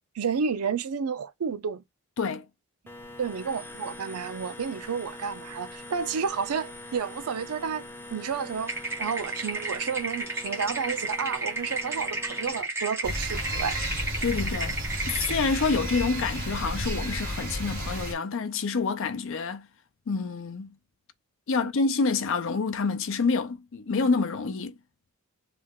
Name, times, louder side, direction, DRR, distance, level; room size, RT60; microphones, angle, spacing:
voice 1, 0.2-1.8 3.2-8.7 9.0-13.8 21.5-21.7, right 6 dB, 90° right, 0.5 m, -31 dB
sound 1, 2.9-12.6, left 1 dB, 10° left, 0.5 m, -43 dB
sound 2, 8.7-15.4, right 2 dB, 10° right, 1.0 m, -33 dB
sound 3, 13.0-18.1, equal, 40° right, 1.7 m, -32 dB
voice 2, 14.2-19.7 20.1-20.7 21.5-24.8, left 4 dB, 60° left, 0.5 m, -27 dB
3.3 x 2.3 x 3.5 m
head